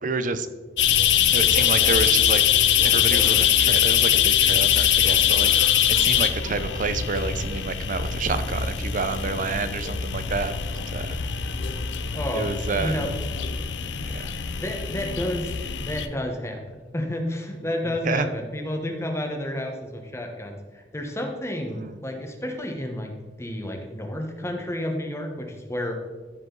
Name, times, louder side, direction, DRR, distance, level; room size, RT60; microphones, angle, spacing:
voice 1, 0.0-0.5 1.3-2.4 2.8-5.5 5.9-11.2 12.3-13.1 14.0-14.3 17.9-18.3 21.7-21.9, right 4 dB, 45° right, 12 dB, 0.6 m, -29 dB
sound 1, 0.8-16.1, left 9 dB, 85° left, 0.6 m, -22 dB
voice 2, 12.1-13.1 14.3-23.1 23.4-26.0, left 1 dB, 15° left, 3 dB, 1.1 m, -31 dB
14.0 x 5.1 x 3.9 m, 1.3 s
head